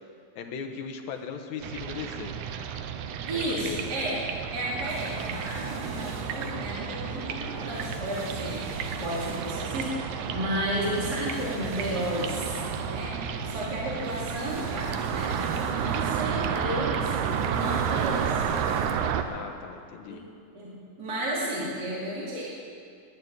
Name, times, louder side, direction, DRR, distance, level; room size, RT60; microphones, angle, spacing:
voice 1, 0.4-2.3 3.3-3.9 19.3-20.2, left 6 dB, 75° left, 4 dB, 2.4 m, -38 dB
sound 1, 1.6-19.2, right 8 dB, 80° right, 2.2 m, -31 dB
voice 2, 3.3-8.6 9.0-13.2 13.4-18.4 20.1-20.2 20.5-22.4, right 1 dB, 35° right, -6 dB, 2.9 m, -33 dB
sound 2, 4.9-19.1, left 1 dB, 65° right, 5.1 m, -42 dB
13.5 x 9.6 x 9.4 m, 2.4 s
omnidirectional pair, 3.4 m